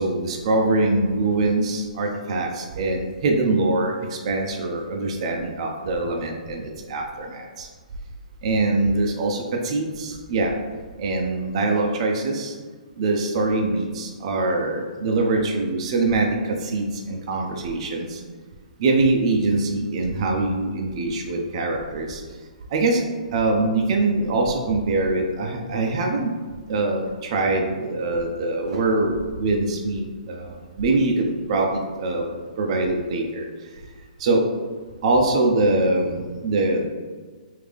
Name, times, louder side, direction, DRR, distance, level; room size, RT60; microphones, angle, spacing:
voice 1, 0.0-7.7 8.4-10.5 11.0-12.5 13.0-18.2 18.8-22.2 22.7-23.0 23.3-26.3 26.7-33.5 34.2-34.4 35.0-36.8, right 2 dB, 45° right, 1 dB, 0.5 m, -23 dB
3.4 x 2.7 x 3.5 m, 1.5 s
hypercardioid pair, 150°, 4 cm